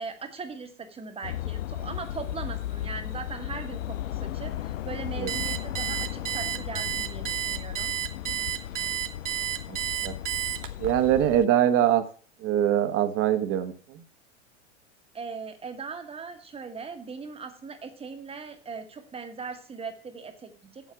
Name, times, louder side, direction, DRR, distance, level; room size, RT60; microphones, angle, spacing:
voice 1, 0.0-7.9 15.1-20.9, right 5 dB, 15° right, 6 dB, 1.4 m, -39 dB
sound 1, 1.2-11.4, left 12 dB, 85° left, 0.6 m, -35 dB
Alarm, 5.3-10.9, right 12 dB, 85° right, 1.2 m, -31 dB
voice 2, 9.7-10.1 10.8-12.0 12.4-14.0, right 11 dB, 35° right, 9 dB, 1.2 m, -23 dB
7.9 x 7.0 x 6.0 m, 0.41 s
hypercardioid pair, 120°, 37 cm